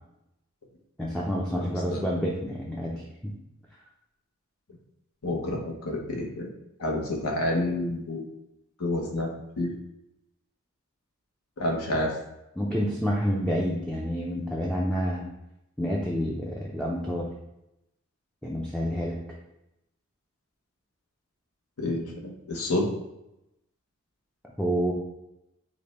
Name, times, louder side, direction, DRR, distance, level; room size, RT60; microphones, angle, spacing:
voice 1, 1.0-2.9 3.2-3.3 12.6-15.2 15.8-17.3 18.4-19.2 24.6-24.9, equal, 5° left, -4 dB, 0.4 m, -28 dB
voice 2, 1.6-2.1 5.2-6.5 6.8-8.2 8.8-9.3 9.6-9.7 11.6-12.1 21.8-22.9, left 1 dB, 75° left, 0 dB, 0.9 m, -29 dB
5.1 x 2.2 x 4.1 m, 0.88 s
head